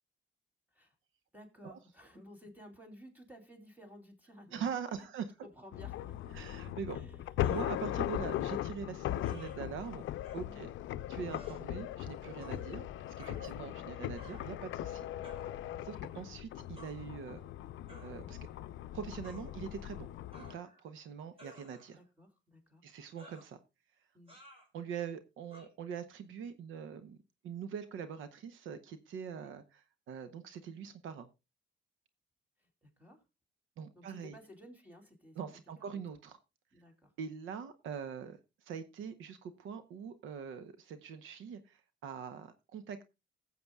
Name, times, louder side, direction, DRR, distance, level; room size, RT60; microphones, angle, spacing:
voice 1, 1.3-4.6 5.0-5.1 5.4-6.5 6.9-7.4 10.4-10.7 13.3-13.9 21.4-21.5 22.0-22.8 24.1-24.3 29.3-29.6 32.6-33.2 33.9-35.4 35.8-36.0 36.7-37.1, equal, 10° right, 3 dB, 3.0 m, -56 dB
voice 2, 4.5-5.3 6.3-7.0 7.5-10.0 10.3-10.7 11.1-15.1 15.8-17.4 18.0-18.4 18.9-20.1 20.4-22.0 22.8-23.6 24.7-27.2 27.4-31.3 33.8-34.4 35.4-36.4 37.2-43.1, right 7 dB, 85° right, 12 dB, 0.8 m, -43 dB
sound 1, 5.7-20.5, left 13 dB, 80° left, 0.5 m, -39 dB
sound 2, 7.4-7.7 9.2-9.6 10.2-10.4 11.3-11.6 12.4-12.7 13.2-13.8 14.2-14.6 15.2-15.5 16.8-17.0 17.9-18.2 19.2-19.5 20.3-20.9 21.4-22.0 23.2-23.5 24.3-24.7 25.5-25.7, right 1 dB, 30° right, 3.7 m, -55 dB
19.5 x 7.6 x 2.3 m, 0.26 s
cardioid pair, 90°, 20 cm